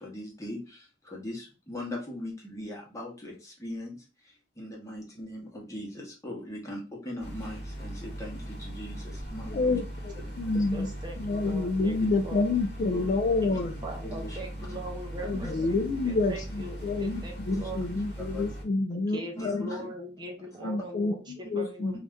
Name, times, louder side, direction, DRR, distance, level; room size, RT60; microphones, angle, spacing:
voice 1, 0.0-9.7 10.3-10.6 12.0-12.1 12.9-13.1 13.5-13.6 14.0-14.9 15.3-15.7 17.1-17.2 17.5-17.6 18.2-18.5 19.3-19.9 20.5-20.7, left 1 dB, 20° left, -2 dB, 1.0 m, -40 dB
sound 1, 7.2-18.6, right 1 dB, 65° left, 1.0 m, -39 dB
voice 2, 9.5-13.8 15.2-17.2 17.5-19.7 20.6-22.0, left 3 dB, 45° left, 6 dB, 0.3 m, -28 dB
voice 3, 10.5-12.4 13.6-15.8 16.0-17.8 18.9-22.0, right 1 dB, 25° right, 2 dB, 0.6 m, -41 dB
2.6 x 2.4 x 3.3 m, 0.33 s
head